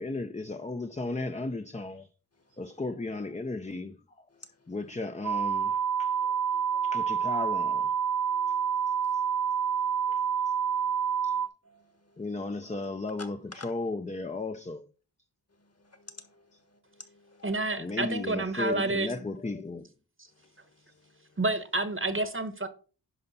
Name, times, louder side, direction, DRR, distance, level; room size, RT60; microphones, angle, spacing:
voice 1, 0.0-2.1 2.5-7.9 8.5-8.6 8.9-9.2 10.1-10.2 11.2-11.4 12.2-14.9 17.8-19.9, left 2 dB, 15° left, 0.6 m, -36 dB
sound 1, 5.2-11.5, right 7 dB, 55° right, 0.6 m, -28 dB
voice 2, 8.3-8.7 10.7-10.8 11.6-12.2 15.8-16.4 16.9-17.5, left 2 dB, 35° left, 1.5 m, -53 dB
voice 3, 17.4-19.1 21.4-22.7, right 2 dB, 30° right, 1.1 m, -29 dB
11.0 x 5.6 x 4.1 m
wide cardioid pair, 100°, 40 cm